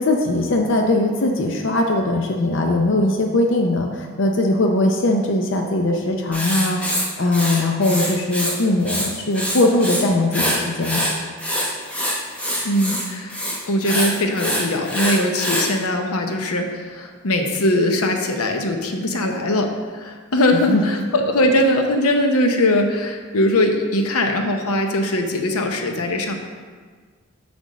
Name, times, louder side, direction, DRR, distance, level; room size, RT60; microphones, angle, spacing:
voice 1, 0.0-11.1 20.7-20.8, left 2 dB, 55° left, 2 dB, 0.5 m, -20 dB
Writing, 6.3-8.6 8.8-10.0 10.3-15.7, equal, 5° left, 0.8 m, -24 dB
voice 2, 12.6-26.3, left 1 dB, 90° left, 4 dB, 0.8 m, -21 dB
7.7 x 3.5 x 6.3 m, 1.6 s
head